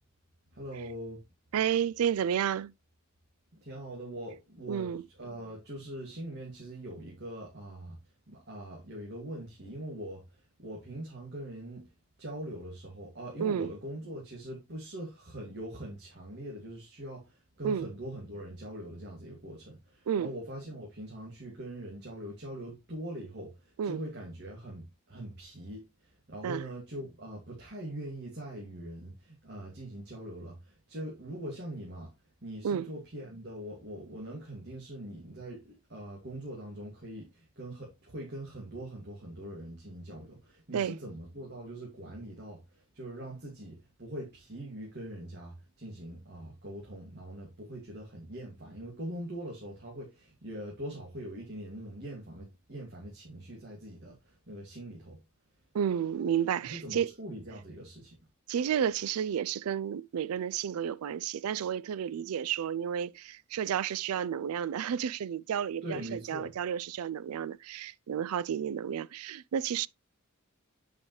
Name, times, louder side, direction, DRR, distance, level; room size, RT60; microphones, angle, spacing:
voice 1, 0.5-1.2 3.5-8.0 8.3-11.9 12.2-32.1 32.4-55.2 56.6-58.2 65.8-66.6, right 1 dB, 50° right, 2.2 m, -42 dB
voice 2, 1.5-2.7 4.7-5.0 13.4-13.7 17.6-17.9 20.1-20.3 23.8-24.0 26.4-26.6 32.6-32.9 40.7-41.0 55.7-57.1 58.5-69.9, right 8 dB, 85° right, 0.4 m, -31 dB
8.6 x 5.1 x 3.1 m
head